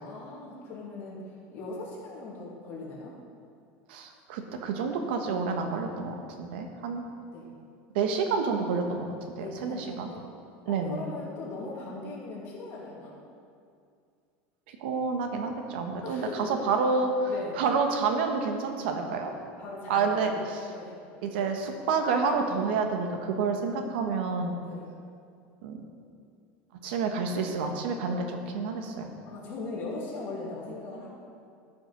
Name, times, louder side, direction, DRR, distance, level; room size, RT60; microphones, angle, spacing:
voice 1, 0.0-3.1 5.2-5.4 7.3-7.5 9.3-10.3 10.7-13.1 16.0-16.7 17.2-17.6 19.6-20.4 20.7-21.0 24.6-24.9 29.2-31.1, left 3 dB, 40° left, -4 dB, 2.5 m, -39 dB
voice 2, 3.9-7.0 7.9-9.1 9.4-10.1 10.7-11.0 14.8-19.3 19.9-20.3 21.2-24.6 25.6-25.8 26.8-29.1, right 4 dB, 90° right, 4 dB, 1.3 m, -29 dB
13.5 x 6.0 x 5.3 m, 2.3 s
cardioid pair, 165°, 5 cm